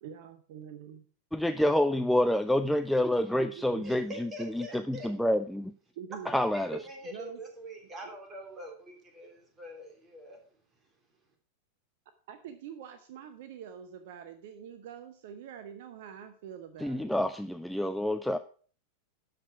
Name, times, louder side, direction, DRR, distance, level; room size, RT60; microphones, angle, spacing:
voice 1, 0.0-1.1 3.6-4.0 5.9-6.3 7.0-7.4 8.0-8.1 12.3-17.2, right 8 dB, 50° right, 10 dB, 0.8 m, -45 dB
voice 2, 1.3-5.7 6.3-6.8 16.8-18.4, left 1 dB, ahead, 9 dB, 0.5 m, -28 dB
voice 3, 3.8-5.1 6.2-10.4, right 1 dB, 20° right, 2 dB, 3.2 m, -44 dB
12.5 x 5.1 x 5.9 m, 0.42 s
figure-of-eight pair, 90°, 0 cm